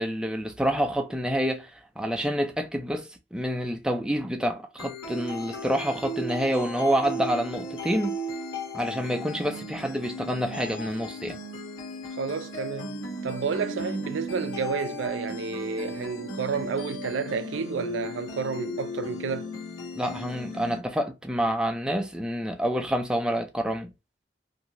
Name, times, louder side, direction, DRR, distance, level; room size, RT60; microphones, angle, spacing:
voice 1, 0.0-8.2 8.7-11.4 19.9-23.9, equal, 5° right, 0.4 m, -28 dB
sound 1, 4.8-20.8, left 1 dB, 85° left, 1.3 m, -36 dB
voice 2, 12.2-19.5, right 5 dB, 75° right, 0.4 m, -31 dB
2.8 x 2.6 x 2.8 m
head